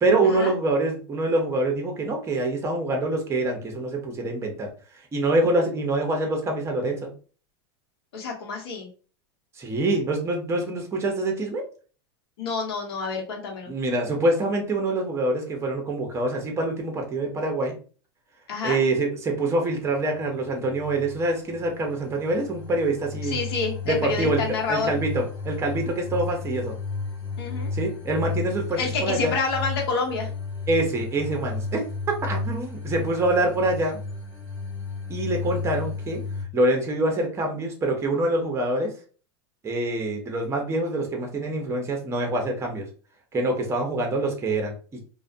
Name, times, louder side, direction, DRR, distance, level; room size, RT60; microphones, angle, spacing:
voice 1, 0.0-4.7 5.1-7.1 9.6-11.6 13.7-17.8 18.6-23.4 23.8-26.7 27.7-29.3 30.7-31.9 32.2-34.0 35.1-36.2 36.5-38.9 39.6-42.9 43.3-45.0, right 2 dB, 20° right, 2 dB, 0.8 m, -25 dB
voice 2, 8.1-8.9 12.4-13.7 18.5-18.8 23.2-25.0 27.4-27.7 28.8-30.3, left 4 dB, 80° left, 1 dB, 0.9 m, -28 dB
sound 1, 20.1-36.4, left 4 dB, 25° left, 1.0 m, -33 dB
2.4 x 2.2 x 2.6 m, 0.39 s
hypercardioid pair, 110°, 13 cm